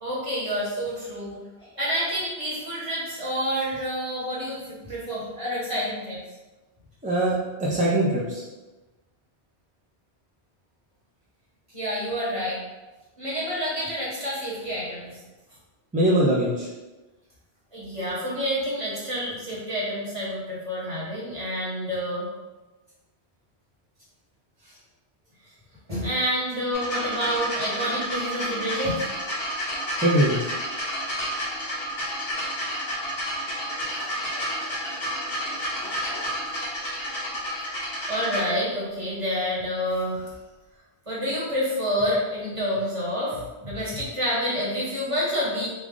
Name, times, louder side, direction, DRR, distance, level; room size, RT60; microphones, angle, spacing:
voice 1, 0.0-6.2 11.7-12.6 13.2-15.1 17.7-22.3 25.9-29.0 34.0-34.1 35.8-35.9 38.1-40.3 41.1-45.7, equal, 30° right, -7 dB, 1.2 m, -28 dB
voice 2, 7.0-8.4 15.9-16.7 30.0-30.5, right 1 dB, 10° right, -7 dB, 0.4 m, -22 dB
sound 1, 26.7-38.4 39.3-39.4, equal, 65° left, 1.3 m, -30 dB
3.3 x 2.5 x 3.7 m, 1.1 s
omnidirectional pair, 1.1 m